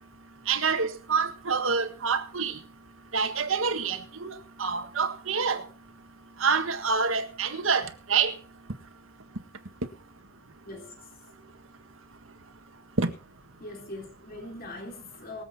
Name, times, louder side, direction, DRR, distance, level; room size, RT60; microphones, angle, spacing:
voice 1, 0.5-2.5 3.1-4.3 4.6-5.6 6.4-8.3 13.0-13.1, right 5 dB, 90° right, 1.6 m, -27 dB
voice 2, 13.6-15.4, left 2 dB, 50° left, 3.6 m, -41 dB
23.5 x 7.9 x 4.3 m
head